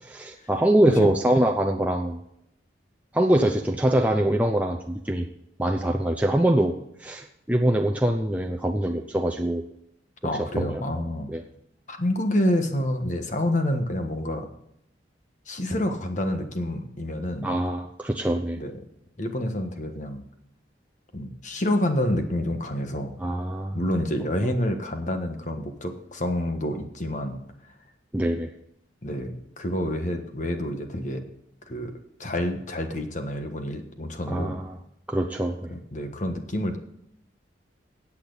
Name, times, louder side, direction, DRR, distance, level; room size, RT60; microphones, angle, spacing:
voice 1, 0.1-2.2 3.1-5.3 5.6-6.7 7.0-9.6 10.2-10.8 11.3-11.4 17.4-18.6 23.2-23.8 24.4-24.5 28.1-28.5 34.3-34.8 35.1-35.7, right 1 dB, 10° right, 2 dB, 0.6 m, -24 dB
voice 2, 10.2-11.3 11.9-14.5 15.5-17.5 18.6-18.7 19.2-20.2 21.1-23.1 23.7-27.4 29.0-31.2 31.7-31.9 32.2-34.6 35.7-36.8, left 1 dB, 45° left, 5 dB, 1.4 m, -28 dB
15.5 x 8.5 x 4.1 m, 0.77 s
head